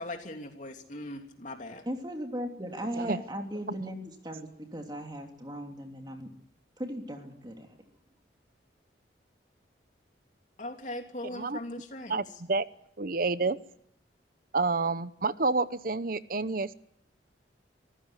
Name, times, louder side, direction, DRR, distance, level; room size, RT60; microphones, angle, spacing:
voice 1, 0.0-1.8 10.6-12.2, left 1 dB, 45° left, 4 dB, 3.1 m, -39 dB
voice 2, 1.8-6.3 6.8-7.7, equal, 25° right, 4 dB, 3.1 m, -37 dB
voice 3, 11.2-11.6 12.1-12.7 13.0-13.6 14.5-16.7, right 3 dB, 50° right, 15 dB, 0.9 m, -29 dB
25.0 x 15.5 x 10.0 m, 0.73 s
head